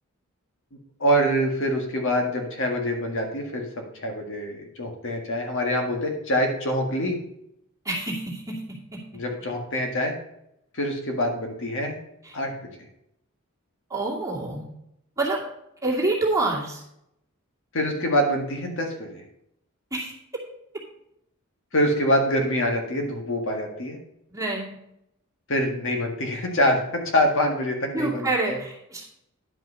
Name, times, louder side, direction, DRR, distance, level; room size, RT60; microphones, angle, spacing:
voice 1, 1.0-3.7 4.0-7.2 9.1-10.1 10.7-12.0 12.3-12.5 17.7-19.2 21.7-24.0 25.5-28.6, equal, 65° left, 2 dB, 1.8 m, -25 dB
voice 2, 7.8-9.0 12.2-12.3 13.9-14.7 15.2-15.4 15.8-16.8 19.9-20.1 24.3-24.8 27.9-29.0, right 2 dB, 15° right, -3 dB, 2.5 m, -27 dB
11.0 x 5.4 x 5.5 m, 0.78 s
head